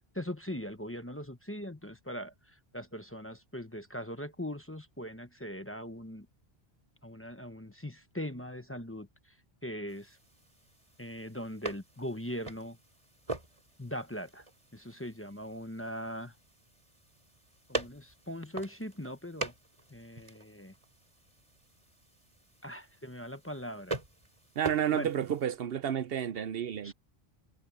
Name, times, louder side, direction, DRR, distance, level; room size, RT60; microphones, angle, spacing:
voice 1, 0.1-6.3 7.0-9.4 9.6-10.2 11.0-12.8 13.8-14.5 14.7-16.3 17.7-19.5 19.9-20.7 22.6-24.0 24.9-25.1 26.8-26.9, equal, 15° left, 1.0 m, -40 dB
sound 1, 9.9-25.4, right 2 dB, 30° right, 4.0 m, -44 dB
voice 2, 24.6-26.9, right 9 dB, 70° right, 0.8 m, -31 dB
omnidirectional pair, 1.1 m